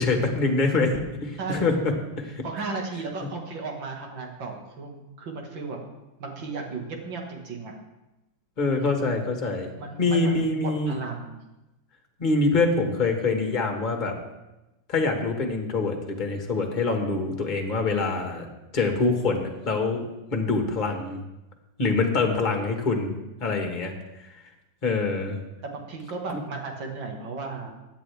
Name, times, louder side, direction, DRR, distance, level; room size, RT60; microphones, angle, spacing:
voice 1, 0.0-2.4 8.6-9.7 10.0-10.9 12.2-14.1 14.9-18.5 18.7-20.1 20.3-21.2 21.8-23.1 23.4-23.9 24.8-25.4 26.3-26.4, left 3 dB, 25° left, 3 dB, 1.5 m, -25 dB
voice 2, 1.4-1.7 2.4-5.8 6.2-7.7 8.7-8.9 9.8-11.4 25.6-27.7, right 4 dB, 90° right, 1 dB, 2.5 m, -35 dB
16.5 x 10.0 x 3.5 m, 0.98 s
omnidirectional pair, 2.0 m